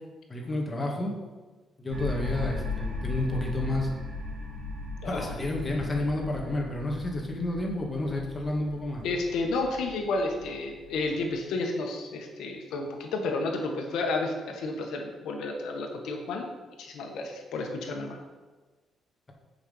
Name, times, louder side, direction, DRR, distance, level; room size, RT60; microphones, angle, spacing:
voice 1, 0.3-1.1 1.8-3.9 5.0-9.0, left 1 dB, 25° left, -1 dB, 2.0 m, -30 dB
sound 1, 1.9-11.3, left 3 dB, 60° right, 2.1 m, -37 dB
voice 2, 5.0-5.3 9.0-16.5 16.8-18.2, left 3 dB, 80° left, 3 dB, 1.4 m, -31 dB
7.5 x 5.7 x 5.4 m, 1.3 s
cardioid pair, 90°, 0 cm